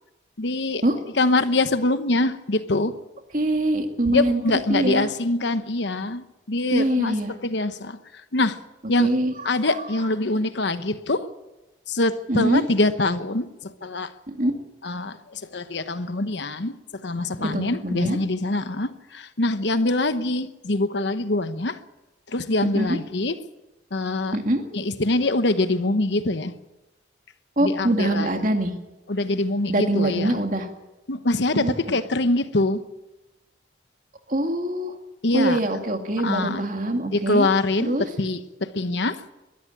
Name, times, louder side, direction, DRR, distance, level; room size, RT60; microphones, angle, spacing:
voice 1, 0.4-0.8 1.2-3.0 4.1-8.0 8.3-8.6 8.9-9.1 9.4-11.3 11.9-14.1 14.8-21.8 22.3-23.3 23.9-24.4 24.7-26.5 27.6-28.3 29.1-30.4 31.1-32.8 35.2-35.6 36.2-36.6 37.1-39.2, left 2 dB, 65° left, 1.0 m, -24 dB
voice 2, 3.3-4.4 4.7-5.1 6.7-7.3 9.0-9.3 12.3-12.7 14.3-14.5 17.4-18.2 22.7-23.0 24.3-24.6 27.6-28.7 29.7-30.7 31.5-31.7 34.3-35.0 35.3-37.5 37.8-38.1, right 1 dB, 45° right, 2.2 m, -23 dB
22.0 x 13.0 x 8.9 m
head